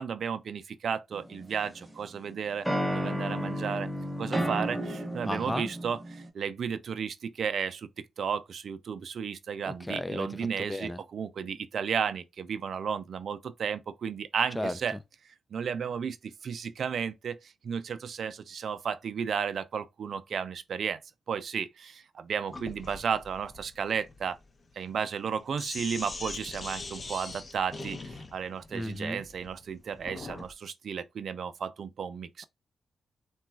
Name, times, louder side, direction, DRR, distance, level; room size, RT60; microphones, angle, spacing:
voice 1, 0.0-2.7 2.9-3.9 4.2-7.9 8.2-15.0 15.5-21.0 21.3-24.4 24.8-32.5, right 7 dB, 70° right, 0.3 m, -33 dB
sound 1, 1.1-2.0 2.6-6.3, equal, 5° right, 0.9 m, -32 dB
voice 2, 5.2-5.7 9.7-10.3 10.7-11.0 14.6-14.7 28.7-29.2, left 1 dB, 10° left, 0.4 m, -33 dB
Sink (filling or washing), 22.5-30.5, left 3 dB, 40° left, 0.8 m, -42 dB
3.8 x 2.3 x 2.3 m
cardioid pair, 65°, 0 cm